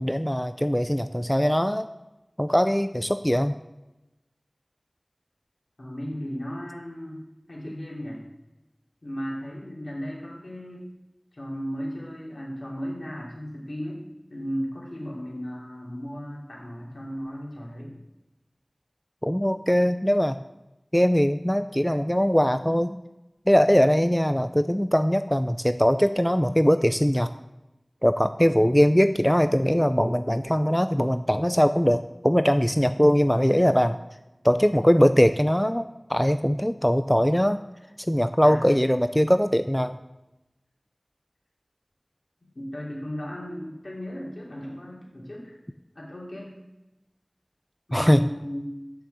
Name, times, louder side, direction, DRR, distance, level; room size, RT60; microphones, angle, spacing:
voice 1, 0.0-1.9 2.4-3.6 19.2-20.4 20.9-23.0 23.5-27.3 28.0-34.0 34.4-37.6 38.1-40.0 47.9-48.2, equal, 10° left, 10 dB, 0.4 m, -21 dB
voice 2, 5.8-8.2 9.0-10.9 11.3-17.9 38.4-38.7 42.4-45.5 46.0-46.5 47.9-48.7, equal, 75° left, -5 dB, 3.5 m, -35 dB
7.0 x 6.3 x 7.0 m, 0.98 s
wide cardioid pair, 40°, 0 cm